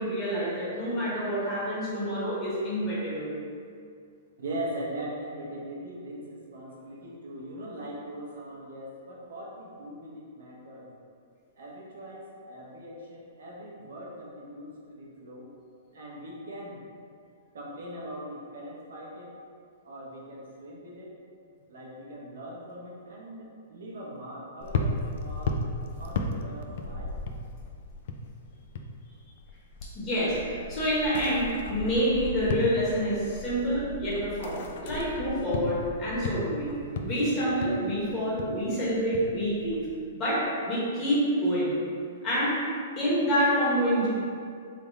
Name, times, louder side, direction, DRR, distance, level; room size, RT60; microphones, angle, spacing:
voice 1, 0.0-3.3 29.9-36.7 37.0-39.9 40.1-41.8 42.2-42.5 43.0-44.1, equal, 25° left, -8 dB, 1.2 m, -27 dB
voice 2, 4.4-10.9 11.6-15.5 15.9-16.8 17.5-19.3 19.8-21.1 21.7-25.6 26.0-27.2, right 1 dB, 80° right, -4 dB, 0.8 m, -40 dB
sound 1, 24.6-29.0 29.2-40.0, left 2 dB, 60° left, 0.3 m, -35 dB
3.4 x 2.0 x 4.0 m, 2.3 s
hypercardioid pair, 150°, 0 cm